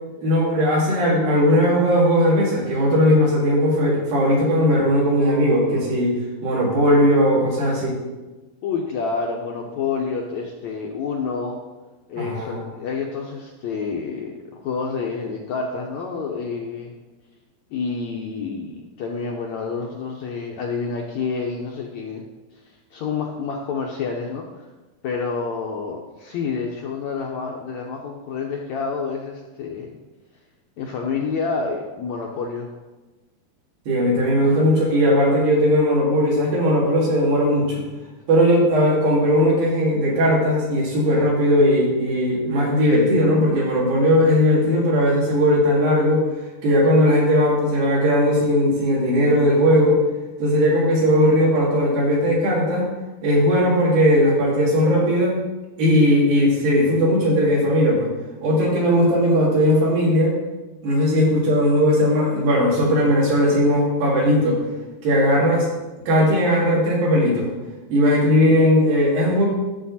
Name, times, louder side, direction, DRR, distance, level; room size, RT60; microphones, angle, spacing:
voice 1, 0.2-8.0 12.1-12.6 33.9-37.8 38.3-46.3 46.6-50.0 50.4-52.9 53.2-55.3 55.8-58.1 58.4-60.3 60.8-64.6 65.0-65.7 66.1-67.5 67.9-69.5, equal, 75° right, -4 dB, 4.6 m, -18 dB
voice 2, 8.6-11.6 12.1-16.9 17.7-22.2 22.5-24.7 25.0-29.9 30.8-32.7, left 5 dB, 75° left, 0 dB, 1.7 m, -28 dB
12.0 x 7.3 x 4.2 m, 1.2 s
omnidirectional pair, 4.2 m